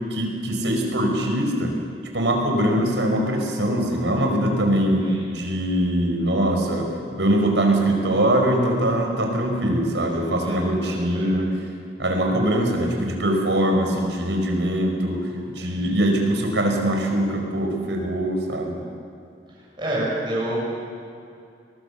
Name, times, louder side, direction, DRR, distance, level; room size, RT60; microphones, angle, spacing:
voice 1, 0.1-1.7 2.1-11.5 12.0-18.8, right 1 dB, 85° right, 2 dB, 4.9 m, -22 dB
voice 2, 5.0-5.3 10.1-11.3 15.6-16.0 19.8-20.6, right 1 dB, 25° right, -5 dB, 7.7 m, -29 dB
23.5 x 19.5 x 7.1 m, 2.4 s
head